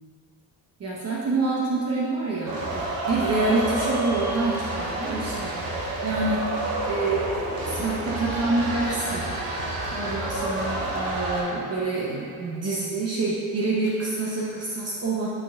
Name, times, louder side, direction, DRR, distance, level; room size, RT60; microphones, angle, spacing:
voice 1, 0.8-5.5 6.0-6.5 6.8-7.2 7.6-9.3 9.9-15.3, right 3 dB, 45° right, -6 dB, 0.9 m, -27 dB
sound 1, 2.5-11.4, right 2 dB, 75° right, 1.2 m, -29 dB
8.2 x 4.4 x 3.5 m, 2.5 s
cardioid pair, 125°, 36 cm